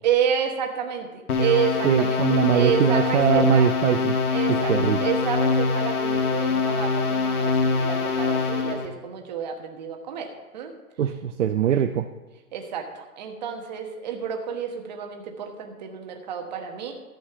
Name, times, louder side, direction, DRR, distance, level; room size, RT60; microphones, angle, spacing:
voice 1, 0.0-3.7 4.3-10.7 12.5-16.9, right 7 dB, 30° right, 3 dB, 1.3 m, -29 dB
sound 1, 1.3-8.9, left 4 dB, 80° left, 2.0 m, -24 dB
voice 2, 1.8-4.2 4.5-5.0 11.0-12.1, right 9 dB, 55° right, 7 dB, 0.6 m, -22 dB
13.0 x 5.5 x 6.8 m, 1.2 s
hypercardioid pair, 175°, 44 cm